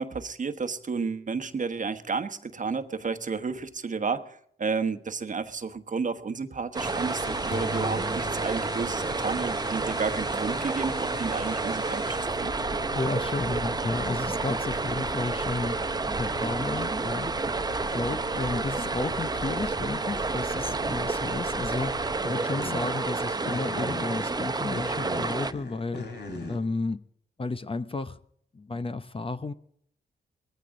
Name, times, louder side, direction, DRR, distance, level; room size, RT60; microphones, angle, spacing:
voice 1, 0.0-12.5, right 5 dB, 45° right, 1.2 m, -32 dB
sound 1, 6.7-26.6, left 2 dB, 65° left, 4.3 m, -40 dB
sound 2, 6.7-25.5, right 3 dB, 20° right, 0.7 m, -30 dB
sound 3, 7.5-10.3, left 3 dB, 90° left, 3.0 m, -39 dB
voice 2, 12.9-15.8 16.2-17.3 17.9-26.1 26.5-27.0 27.4-28.2 28.5-29.5, left 3 dB, 30° left, 0.8 m, -32 dB
20.0 x 15.0 x 3.8 m
cardioid pair, 85°, 19 cm